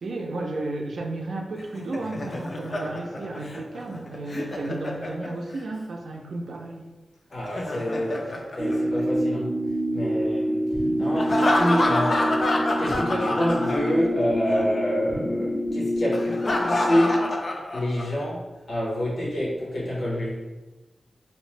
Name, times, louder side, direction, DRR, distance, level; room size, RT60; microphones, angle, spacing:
voice 1, 0.0-6.8, right 2 dB, 75° right, 1 dB, 0.4 m, -33 dB
Laughter, 1.6-5.6 7.3-9.5 11.2-14.2 14.5-14.6 16.1-18.2, left 1 dB, 40° left, 0.3 m, -28 dB
voice 2, 7.3-9.5 9.9-10.7 11.0-12.3 12.8-17.3 17.7-20.4, equal, 85° left, -6 dB, 1.0 m, -27 dB
sound 1, 8.6-17.3, equal, 10° right, 0.6 m, -27 dB
2.7 x 2.0 x 3.1 m, 1.1 s
wide cardioid pair, 145°, 0 cm